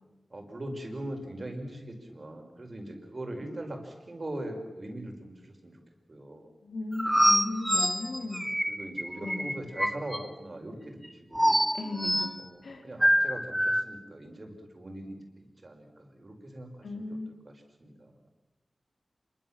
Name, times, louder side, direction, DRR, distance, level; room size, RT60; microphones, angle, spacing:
voice 1, 0.3-5.8 6.1-6.5 8.4-11.7 12.4-17.2 17.5-18.3, right 1 dB, 50° right, 4 dB, 5.3 m, -41 dB
voice 2, 6.6-8.5 9.2-9.5 11.7-12.3 12.6-12.9 16.8-17.4, left 2 dB, 90° left, 4 dB, 3.6 m, -36 dB
sound 1, 7.0-10.2 11.3-12.3 13.0-13.8, equal, 5° right, 1.4 m, -25 dB
26.0 x 23.5 x 7.4 m, 1.1 s
wide cardioid pair, 55°, 0 cm